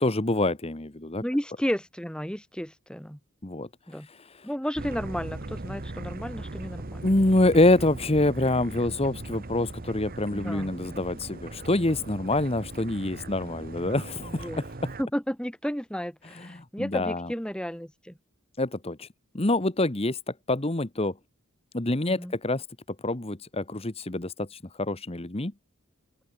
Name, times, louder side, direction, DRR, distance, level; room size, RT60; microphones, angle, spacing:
voice 1, 0.0-1.2 3.4-4.5 7.0-14.6 16.3-17.3 18.6-19.1 19.3-21.1 21.7-22.7 23.0-25.5, left 2 dB, 25° left, 1.2 m, -26 dB
voice 2, 1.2-3.2 3.9-4.1 4.4-7.1 10.3-11.0 14.2-14.6 15.0-18.2 22.1-22.3, equal, 5° left, 2.4 m, -33 dB
sound 1, 4.8-15.0, right 2 dB, 40° right, 1.0 m, -39 dB
open air
head